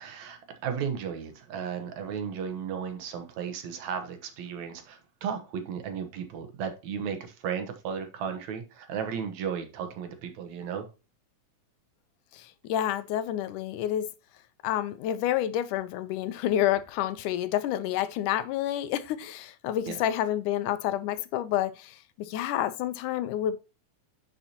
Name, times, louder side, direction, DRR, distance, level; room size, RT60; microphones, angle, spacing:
voice 1, 0.0-10.9 19.9-20.0, right 7 dB, 70° right, 2.4 m, -35 dB
voice 2, 12.3-14.1 14.6-23.6, left 11 dB, 85° left, 2.2 m, -29 dB
10.0 x 5.5 x 2.8 m
omnidirectional pair, 3.6 m